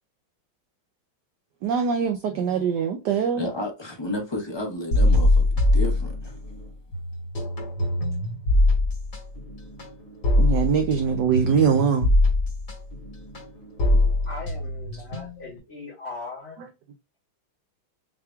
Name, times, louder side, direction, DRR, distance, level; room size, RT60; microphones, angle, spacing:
voice 1, 1.6-3.4 10.4-12.1, right 7 dB, 70° right, 1.0 m, -23 dB
voice 2, 3.1-6.4, left 1 dB, 20° left, 0.8 m, -32 dB
sound 1, 4.9-6.6 6.9-15.6, left 1 dB, 55° left, 2.3 m, -22 dB
voice 3, 14.3-16.6, left 3 dB, 75° left, 3.2 m, -39 dB
6.8 x 3.0 x 2.3 m
omnidirectional pair, 2.3 m